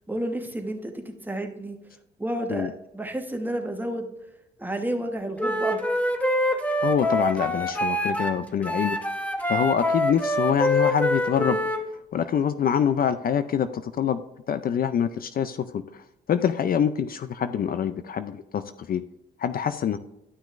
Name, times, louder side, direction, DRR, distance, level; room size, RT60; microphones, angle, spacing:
voice 1, 0.1-1.8 2.2-4.1 4.6-5.8, right 1 dB, 10° right, 4 dB, 1.2 m, -31 dB
Wind instrument woodwind instrument, 5.4-8.3 8.6-11.8, left 1 dB, 5° left, 0.9 m, -25 dB
voice 2, 6.8-9.0 9.5-11.6 12.1-14.2 14.5-19.0 19.4-20.0, left 8 dB, 50° left, 11 dB, 0.4 m, -25 dB
12.0 x 6.1 x 2.5 m, 0.87 s
cardioid pair, 90°, 20 cm